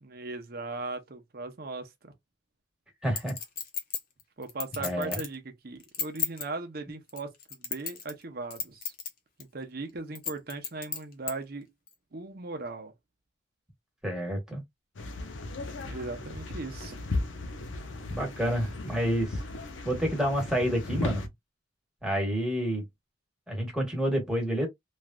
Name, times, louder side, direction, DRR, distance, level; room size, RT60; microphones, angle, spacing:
voice 1, 0.0-2.1 4.4-7.3 7.6-8.9 9.5-11.7 12.1-12.9 15.8-17.0, right 3 dB, 55° right, 0.7 m, -38 dB
voice 2, 3.0-3.3 4.8-5.2 14.0-14.6 18.1-19.4 19.8-21.3 22.0-22.8 23.5-24.7, equal, 5° right, 1.3 m, -29 dB
Chink clink, 3.2-5.4 5.8-6.5 7.1-8.2 8.5-9.1 9.4-9.5 10.2-11.3 11.9-12.0, left 6 dB, 50° left, 0.9 m, -33 dB
sound 1, 15.0-21.3, left 2 dB, 90° left, 0.6 m, -36 dB
3.1 x 2.4 x 2.2 m
head